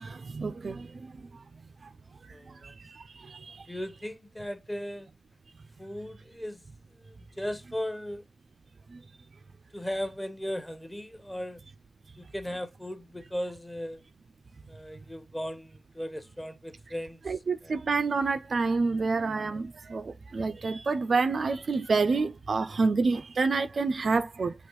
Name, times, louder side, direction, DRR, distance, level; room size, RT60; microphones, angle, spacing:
voice 1, 0.0-0.8 17.2-24.5, right 4 dB, 55° right, 0.4 m, -28 dB
voice 2, 2.3-2.7 3.7-5.1 5.8-6.6 7.0-8.2 9.7-11.6 12.2-14.0 14.7-17.2 17.6-17.8, equal, 10° left, 0.8 m, -37 dB
6.0 x 3.0 x 2.9 m
cardioid pair, 55°, 0 cm